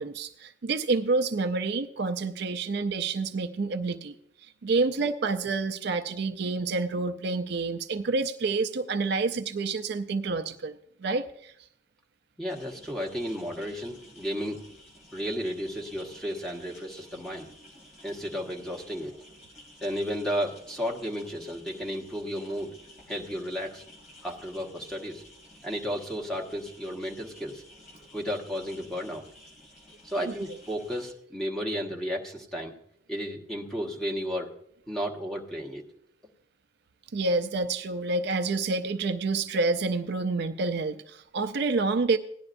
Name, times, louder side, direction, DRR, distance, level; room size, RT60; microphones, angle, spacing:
voice 1, 0.0-4.1 4.4-11.5 30.3-30.4 37.1-42.2, right 3 dB, 60° right, 7 dB, 0.5 m, -28 dB
voice 2, 12.4-14.6 15.1-17.5 18.0-19.2 19.8-22.7 23.1-23.8 24.2-25.2 25.6-27.6 28.1-29.2 30.0-32.7 33.1-34.5 34.9-35.8, equal, ahead, -2 dB, 1.4 m, -33 dB
sound 1, 12.5-31.1, left 1 dB, 40° left, 3.0 m, -53 dB
17.5 x 10.5 x 2.6 m, 0.71 s
head